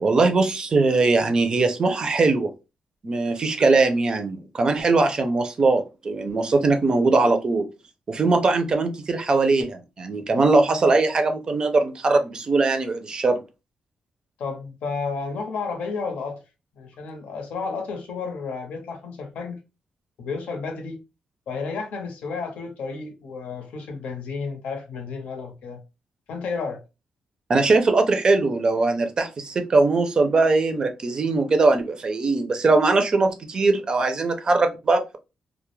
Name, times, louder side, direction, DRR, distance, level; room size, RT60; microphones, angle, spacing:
voice 1, 0.0-2.5 3.0-7.7 8.1-13.4 27.5-35.2, right 3 dB, 35° right, 0.4 m, -21 dB
voice 2, 14.4-16.4 16.8-19.6 20.2-21.0 21.5-25.8 26.3-26.8, left 4 dB, 80° left, 0.7 m, -32 dB
2.2 x 2.0 x 3.0 m
cardioid pair, 130°, 2 cm